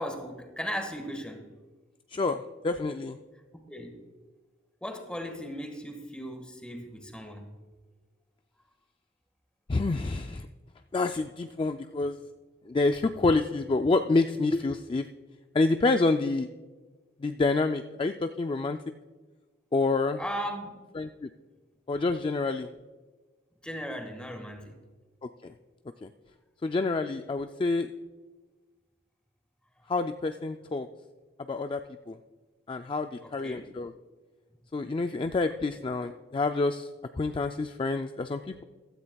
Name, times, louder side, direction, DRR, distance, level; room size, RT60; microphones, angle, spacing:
voice 1, 0.0-1.5 3.5-4.0 4.8-7.5 20.2-20.8 23.6-24.8 33.2-33.7, equal, 5° left, 5 dB, 1.5 m, -37 dB
voice 2, 2.1-3.2 9.7-10.5 10.9-12.2 12.7-15.1 15.5-16.5 17.2-18.8 19.7-20.2 21.0-21.3 21.9-22.7 25.2-25.5 26.0-26.1 26.6-27.9 29.9-30.9 31.5-31.8 32.1-32.2 32.7-33.9 34.7-36.9 37.2-38.6, left 3 dB, 25° left, 7 dB, 0.3 m, -28 dB
15.5 x 13.0 x 2.3 m, 1.3 s
head